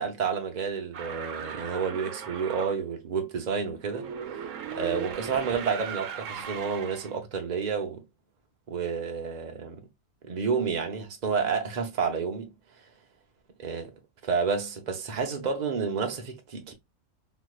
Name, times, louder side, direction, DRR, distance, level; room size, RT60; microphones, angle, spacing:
voice 1, 0.0-4.1 4.7-8.0 8.7-9.8 10.3-12.5 13.6-13.9 14.2-16.7, right 6 dB, 40° right, 0.7 m, -30 dB
sound 1, 0.9-2.8 3.8-7.2, right 7 dB, 70° right, 1.0 m, -38 dB
3.2 x 3.1 x 2.3 m
omnidirectional pair, 1.5 m